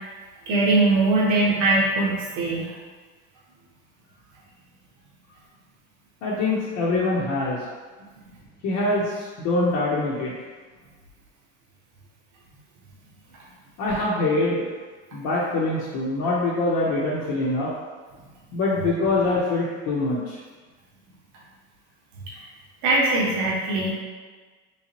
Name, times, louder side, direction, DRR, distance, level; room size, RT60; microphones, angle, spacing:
voice 1, 0.5-2.7 22.8-23.9, right 2 dB, 75° right, -4 dB, 1.0 m, -21 dB
voice 2, 6.2-7.6 8.6-10.3 13.8-14.7 15.1-17.7 18.5-20.4, left 2 dB, 60° left, -6 dB, 0.8 m, -24 dB
3.3 x 3.0 x 2.9 m, 1.4 s
cardioid pair, 130°, 30 cm